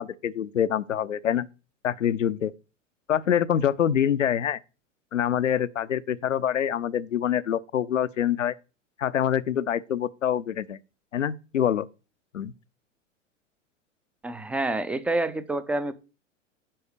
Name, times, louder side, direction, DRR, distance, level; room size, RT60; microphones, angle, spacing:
voice 1, 0.0-1.5 1.8-2.5 3.1-4.6 5.1-8.5 9.0-10.8 11.1-11.9 12.3-12.5, left 9 dB, 80° left, 0.7 m, -25 dB
voice 2, 14.2-15.9, right 2 dB, 5° right, 0.5 m, -27 dB
10.0 x 4.3 x 6.6 m
figure-of-eight pair, 95°, 37 cm